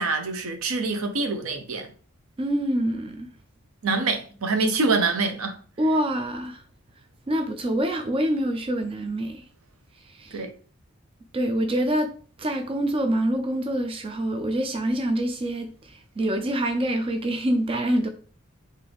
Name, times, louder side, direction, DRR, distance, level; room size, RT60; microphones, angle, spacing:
voice 1, 0.0-1.9 3.8-5.6 10.3-10.5, right 3 dB, 75° right, 0.7 m, -25 dB
voice 2, 2.4-3.3 5.8-6.6 7.3-9.4 10.0-10.4 11.3-12.1 12.4-18.1, right 1 dB, 25° right, 0.4 m, -26 dB
3.9 x 2.7 x 3.4 m
head